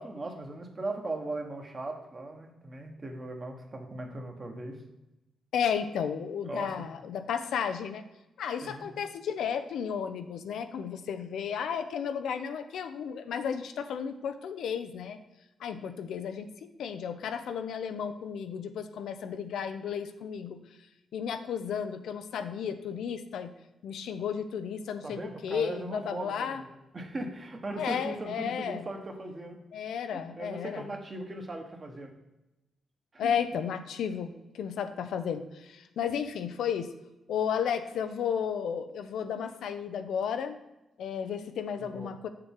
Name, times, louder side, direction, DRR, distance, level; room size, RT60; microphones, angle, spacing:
voice 1, 0.0-4.8 6.5-6.9 8.6-8.9 25.0-26.7 26.9-29.6 30.4-32.1 33.1-33.3 41.8-42.1, right 2 dB, 30° right, 3 dB, 1.3 m, -38 dB
voice 2, 5.5-8.0 8.4-15.2 15.6-16.5 16.8-20.6 21.1-23.5 23.8-26.6 27.8-28.9 29.7-30.9 33.2-36.9 37.3-40.6 41.0-42.3, left 7 dB, 90° left, 9 dB, 0.6 m, -33 dB
7.2 x 6.7 x 3.6 m, 0.98 s
wide cardioid pair, 140°, 0 cm